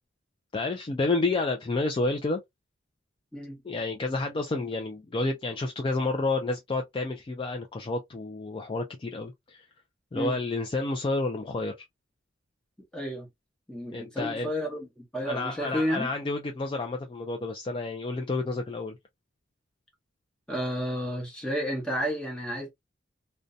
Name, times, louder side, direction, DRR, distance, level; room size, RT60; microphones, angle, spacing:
voice 1, 0.5-2.4 3.6-9.7 10.1-11.7 13.9-14.5 15.2-19.0, left 3 dB, 25° left, 0.3 m, -30 dB
voice 2, 12.9-13.3 13.7-16.1 20.5-22.7, equal, 5° left, 1.0 m, -31 dB
2.6 x 2.2 x 2.4 m
head